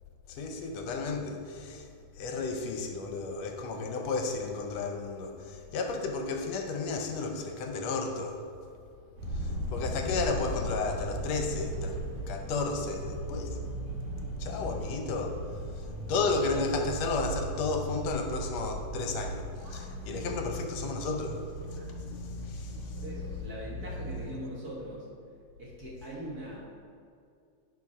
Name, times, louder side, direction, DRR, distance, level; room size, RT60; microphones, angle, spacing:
voice 1, 0.3-1.9 2.1-8.4 9.3-12.0 12.3-13.6 14.4-23.0, left 3 dB, 70° left, 3 dB, 1.8 m, -33 dB
sound 1, 9.2-24.3, right 1 dB, 70° right, 2.7 m, -37 dB
voice 2, 23.0-25.1 25.6-26.7, right 1 dB, 50° right, -5 dB, 1.1 m, -41 dB
10.5 x 4.7 x 5.4 m, 2.4 s
omnidirectional pair, 3.4 m